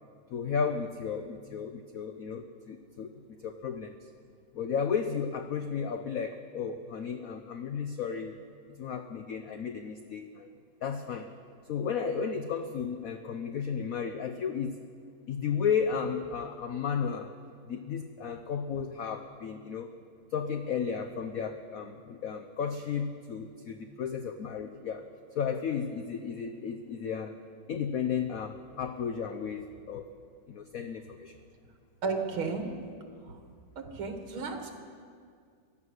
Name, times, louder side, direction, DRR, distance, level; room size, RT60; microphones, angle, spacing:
voice 1, 0.3-4.1 4.5-8.4 8.8-10.5 10.8-11.3 11.7-14.8 15.3-17.3 17.7-19.9 20.3-25.0 25.3-27.4 27.7-30.1 30.5-31.4, left 6 dB, 80° left, 8 dB, 0.7 m, -33 dB
voice 2, 32.0-32.7 33.2-33.4 33.8-34.7, right 4 dB, 80° right, 4 dB, 2.4 m, -33 dB
16.0 x 12.0 x 6.4 m, 2.2 s
omnidirectional pair, 2.3 m